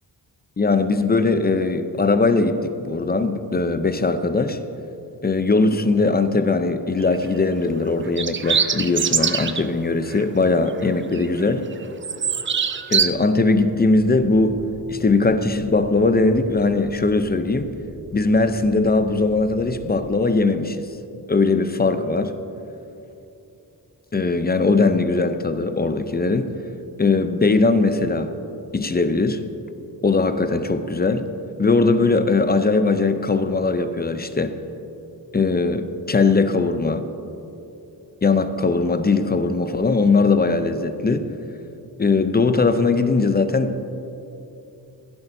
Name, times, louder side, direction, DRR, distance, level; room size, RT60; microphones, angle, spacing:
voice 1, 0.6-4.6 5.2-11.7 12.9-17.7 18.1-20.9 21.3-22.3 24.1-26.5 27.0-28.4 28.7-29.5 30.0-31.3 31.6-34.6 35.3-37.1 38.2-41.3 42.0-43.8, left 3 dB, 25° left, 0.5 m, -20 dB
sound 1, 7.0-7.3 8.1-9.7 10.1-10.2 10.7-11.4 11.7-13.1, right 6 dB, 30° right, 0.4 m, -23 dB
sound 2, 13.4-20.1, equal, 60° right, 2.7 m, -44 dB
15.0 x 10.5 x 2.7 m
wide cardioid pair, 95°, 41 cm